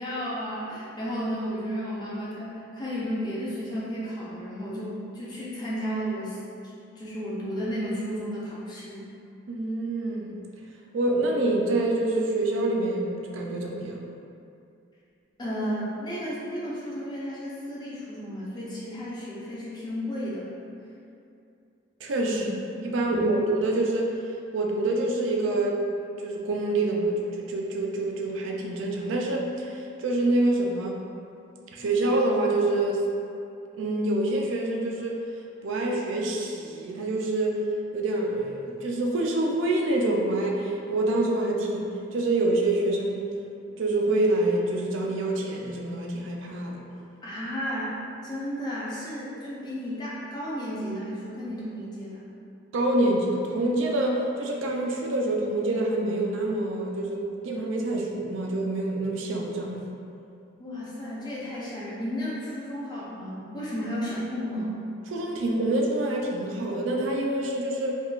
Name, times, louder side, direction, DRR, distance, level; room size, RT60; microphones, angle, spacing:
voice 1, 0.0-6.4 7.0-9.0 15.4-20.5 22.3-22.6 23.1-23.2 47.2-47.9 48.2-52.2 60.6-64.8, equal, 20° left, -7 dB, 0.6 m, -33 dB
voice 2, 9.5-10.4 10.9-14.0 22.0-22.5 22.8-24.1 24.5-25.8 26.2-31.0 31.7-33.0 33.7-35.2 35.6-37.6 37.9-43.3 43.8-46.8 52.7-57.2 57.4-59.8 65.1-68.0, right 2 dB, 85° right, 0 dB, 0.4 m, -26 dB
3.7 x 2.3 x 2.4 m, 2.6 s
head